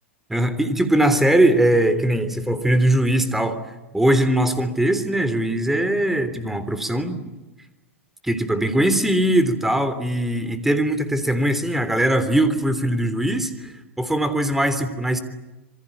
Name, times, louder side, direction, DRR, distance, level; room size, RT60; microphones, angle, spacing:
voice 1, 0.3-3.6 3.9-7.2 8.2-15.2, right 1 dB, 5° right, 11 dB, 3.4 m, -20 dB
28.0 x 24.5 x 8.7 m, 1.0 s
figure-of-eight pair, 95°, 7 cm